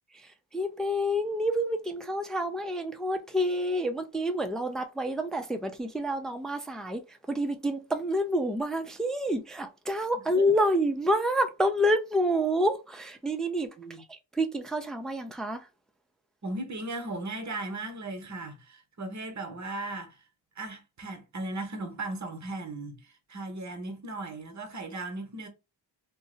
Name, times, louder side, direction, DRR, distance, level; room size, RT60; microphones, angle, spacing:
voice 1, 0.5-7.0 7.3-13.7 14.3-15.6, equal, ahead, 0.3 m, -28 dB
voice 2, 10.1-10.4 13.8-14.0 16.4-20.2 20.6-25.5, right 2 dB, 35° right, 0.8 m, -37 dB
2.6 x 2.0 x 3.7 m
wide cardioid pair, 100°, 48 cm